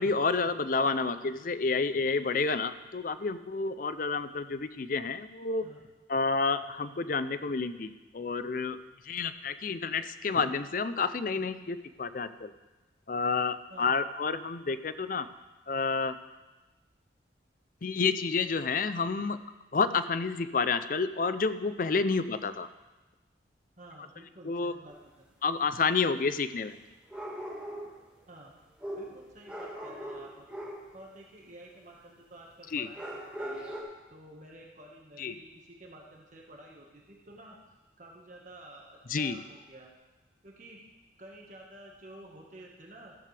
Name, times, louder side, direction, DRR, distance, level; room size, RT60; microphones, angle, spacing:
voice 1, 0.0-5.6 6.1-8.8 9.0-12.5 13.1-15.3 15.7-16.2 17.8-19.4 19.7-22.7 24.4-24.7 25.4-26.8 32.7-32.9 35.2-35.3 39.1-39.4, left 4 dB, 45° left, 12 dB, 0.5 m, -29 dB
voice 2, 23.8-25.3 28.3-28.5 29.0-30.4 30.9-33.8 34.1-37.6 38.0-39.9 40.4-40.8 41.2-43.2, right 1 dB, 40° right, -1 dB, 1.6 m, -51 dB
sound 1, 24.9-25.0 27.1-28.0 28.8-30.9 32.9-33.8, equal, 5° right, 1.8 m, -40 dB
14.0 x 13.5 x 3.4 m, 1.1 s
head